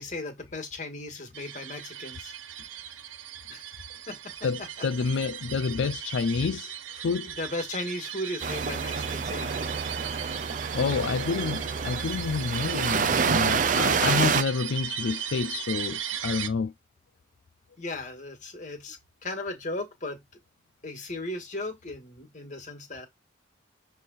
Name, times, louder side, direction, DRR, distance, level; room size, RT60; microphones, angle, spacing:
voice 1, 0.0-2.3 3.5-3.7 4.1-4.2 7.2-9.6 17.8-19.0 19.2-20.2 20.8-23.1, left 2 dB, 40° left, 1.9 m, -36 dB
sound 1, 1.3-16.5, right 10 dB, 85° right, 0.9 m, -37 dB
voice 2, 4.4-7.4 10.7-16.7, left 5 dB, 70° left, 0.4 m, -29 dB
sound 2, 8.4-14.4, right 5 dB, 40° right, 0.5 m, -28 dB
7.4 x 3.4 x 4.0 m
head